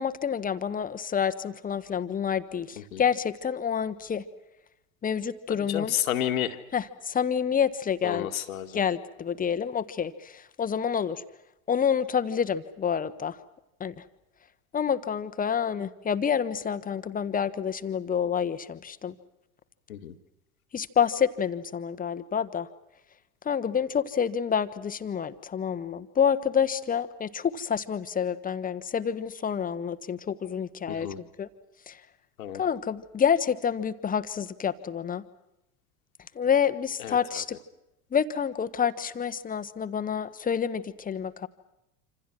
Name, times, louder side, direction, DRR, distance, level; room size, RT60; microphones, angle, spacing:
voice 1, 0.0-4.2 5.0-5.9 6.7-8.3 8.7-11.2 11.7-13.4 13.8-13.9 14.7-19.1 20.7-22.7 23.4-31.1 31.4-31.5 31.9-32.0 32.5-35.2 36.3-37.6 38.1-41.5, left 7 dB, 20° left, 11 dB, 1.3 m, -28 dB
voice 2, 5.5-6.6 8.0-8.8 19.9-20.1 30.9-31.2 32.4-32.6 37.0-37.4, left 11 dB, 65° left, 7 dB, 1.9 m, -31 dB
27.5 x 26.5 x 6.2 m, 0.88 s
figure-of-eight pair, 75°, 45 cm